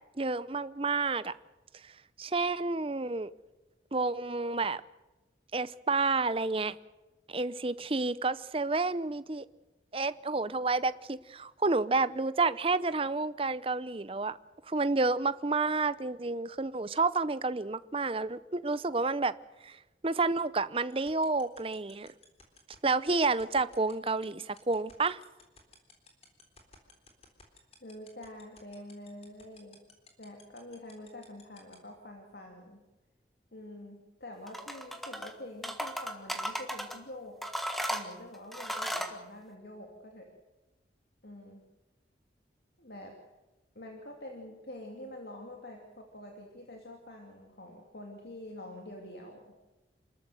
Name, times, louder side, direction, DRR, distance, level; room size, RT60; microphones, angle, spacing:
voice 1, 0.2-1.3 2.2-3.3 3.9-4.8 5.5-6.7 7.3-9.4 9.9-14.4 14.7-19.3 19.6-19.8 20.0-22.1 22.8-25.2, right 3 dB, 30° right, 15 dB, 0.6 m, -30 dB
sound 1, 20.9-31.7, left 6 dB, 35° left, 3.7 m, -55 dB
voice 2, 27.8-29.8 30.2-32.8 33.5-37.4 37.9-40.3 41.2-41.7 42.8-43.1 43.7-49.5, left 1 dB, 60° left, 1 dB, 2.7 m, -46 dB
sound 2, 34.5-35.3 35.6-37.0 37.4-39.2, equal, ahead, 1.5 m, -35 dB
27.5 x 13.5 x 7.8 m, 1.1 s
head